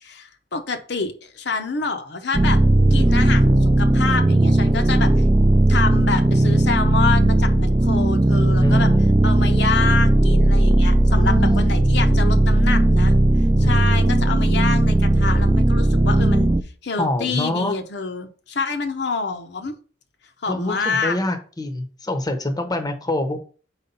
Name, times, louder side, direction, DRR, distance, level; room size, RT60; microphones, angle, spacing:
voice 1, 0.0-2.6 2.9-5.1 5.7-8.9 9.2-13.2 13.6-16.5 16.8-19.7 20.4-21.1, left 4 dB, 65° left, 5 dB, 0.8 m, -27 dB
sound 1, 2.3-16.6, right 1 dB, 15° right, 0.4 m, -16 dB
voice 2, 8.6-9.1 11.1-11.6 12.3-12.5 13.6-14.3 17.0-17.7 20.5-23.4, left 1 dB, 20° left, 6 dB, 0.8 m, -26 dB
4.6 x 4.1 x 5.4 m, 0.40 s
head